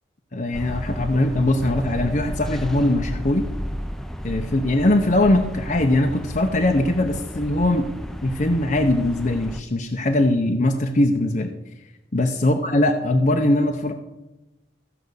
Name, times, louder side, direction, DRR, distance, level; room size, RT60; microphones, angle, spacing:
voice 1, 0.3-3.5 4.2-7.9 8.2-11.6 12.1-13.9, left 1 dB, 40° left, 3 dB, 0.8 m, -21 dB
sound 1, 0.5-9.6, equal, ahead, 0.4 m, -32 dB
15.0 x 5.2 x 8.1 m, 1.0 s
head